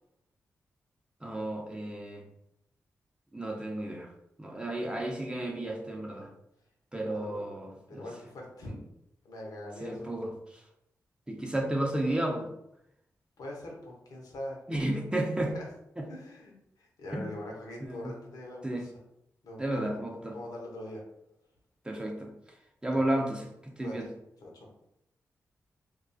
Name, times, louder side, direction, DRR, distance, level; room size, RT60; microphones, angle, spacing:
voice 1, 1.2-2.2 3.3-4.1 4.4-6.3 6.9-8.0 8.6-8.8 9.8-10.3 11.3-12.5 14.7-15.5 16.0-16.1 17.1-17.3 17.9-18.1 18.6-18.8 19.6-20.4 21.8-22.3 22.8-24.1, right 1 dB, 15° right, 1 dB, 0.6 m, -32 dB
voice 2, 7.0-7.4 7.9-8.8 9.2-10.1 13.4-14.6 15.5-15.7 16.1-18.9 19.4-21.0 22.9-23.1 23.8-24.1 24.4-24.7, left 1 dB, 80° left, -1 dB, 0.7 m, -42 dB
2.3 x 2.3 x 2.5 m, 0.80 s
supercardioid pair, 45°, 6 cm